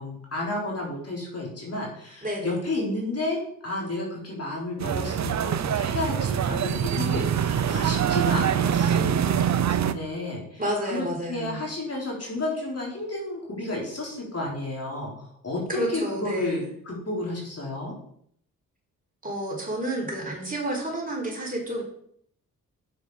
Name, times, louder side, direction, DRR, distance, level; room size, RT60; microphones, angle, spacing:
voice 1, 0.0-9.5 9.8-18.0, left 2 dB, 45° left, -3 dB, 3.9 m, -32 dB
voice 2, 2.2-2.6 10.6-11.6 15.7-16.6 19.2-21.8, right 1 dB, 25° right, -2 dB, 4.1 m, -30 dB
sound 1, 4.8-9.9, right 9 dB, 55° right, 0.7 m, -24 dB
8.0 x 7.0 x 4.9 m, 0.67 s
cardioid pair, 65°, 33 cm